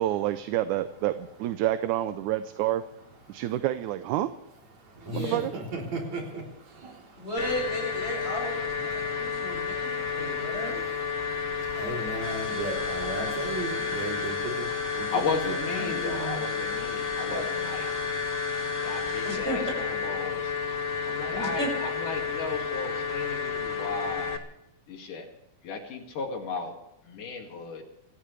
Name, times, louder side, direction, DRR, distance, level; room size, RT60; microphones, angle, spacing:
voice 1, 0.0-2.8 3.3-4.3 5.1-5.5, right 13 dB, 80° right, 11 dB, 2.1 m, -28 dB
voice 2, 3.2-3.6 4.7-7.3 8.9-18.2, right 2 dB, 60° right, -1 dB, 5.1 m, -38 dB
voice 3, 4.9-5.4 7.2-8.6 8.9-10.8 19.2-19.6 21.3-21.7, equal, 20° right, -1 dB, 7.1 m, -34 dB
sound 1, 7.4-24.4, left 6 dB, 45° left, 1.1 m, -31 dB
sound 2, 12.2-19.3, left 1 dB, 5° right, 6.8 m, -39 dB
voice 4, 15.1-17.9 18.8-20.5 21.0-24.4 24.9-25.3 25.6-26.7 27.1-27.8, left 4 dB, 80° left, 0 dB, 4.0 m, -35 dB
26.5 x 15.5 x 3.4 m, 0.85 s
omnidirectional pair, 3.6 m